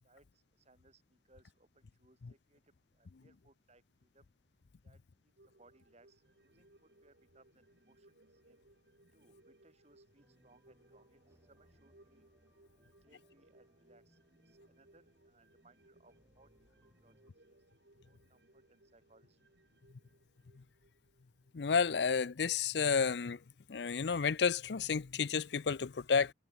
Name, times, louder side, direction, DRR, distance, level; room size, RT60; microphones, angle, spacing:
voice 1, 0.0-4.3 4.8-8.6 9.1-12.3 12.7-17.6 18.0-19.4, right 2 dB, 40° right, 7.1 m, -68 dB
sound 1, 5.4-22.2 22.5-22.6, right 1 dB, 65° right, 2.8 m, -67 dB
sound 2, 10.2-17.3, equal, 15° right, 6.1 m, -71 dB
voice 2, 21.5-23.4 23.7-26.3, left 6 dB, 65° left, 0.5 m, -31 dB
head